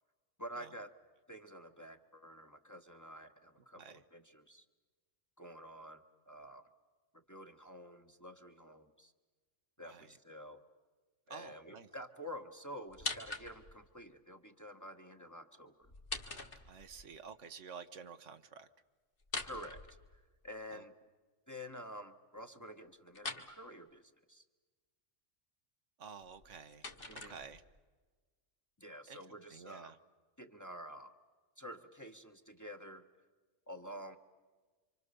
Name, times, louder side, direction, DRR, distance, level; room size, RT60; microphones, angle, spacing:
voice 1, 0.4-0.9 1.3-4.6 5.4-6.7 7.3-9.1 9.8-10.6 11.3-15.9 19.4-19.8 20.4-20.9 21.5-24.4 27.1-27.4 28.8-29.9 30.4-31.1 31.6-33.0 33.7-34.2, equal, 15° left, 5 dB, 1.1 m, -49 dB
voice 2, 9.8-10.1 11.3-11.9 16.7-18.7 20.7-20.8 26.0-26.9 27.1-27.6 29.1-29.2 29.5-30.0, right 6 dB, 75° right, 10 dB, 1.4 m, -51 dB
sound 1, 12.9-13.9 15.8-17.1 19.2-20.5 23.1-23.5 26.2-27.8, left 3 dB, 45° left, 1.8 m, -43 dB
27.5 x 25.5 x 6.8 m, 1.4 s
omnidirectional pair, 1.3 m